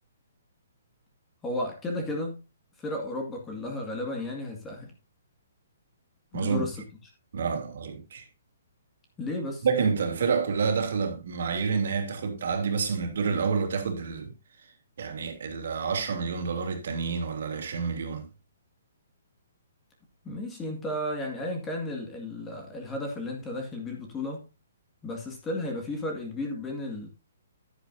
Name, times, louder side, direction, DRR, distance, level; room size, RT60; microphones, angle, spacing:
voice 1, 1.4-2.4 2.8-4.9 6.3-6.8 9.2-9.7 20.2-24.4 25.0-27.1, left 1 dB, 10° left, 2.0 m, -33 dB
voice 2, 6.3-6.7 7.3-8.3 9.6-14.3 14.6-14.7 15.0-18.3, right 5 dB, 60° right, 2.9 m, -28 dB
11.0 x 10.0 x 2.7 m
hypercardioid pair, 170°, 0 cm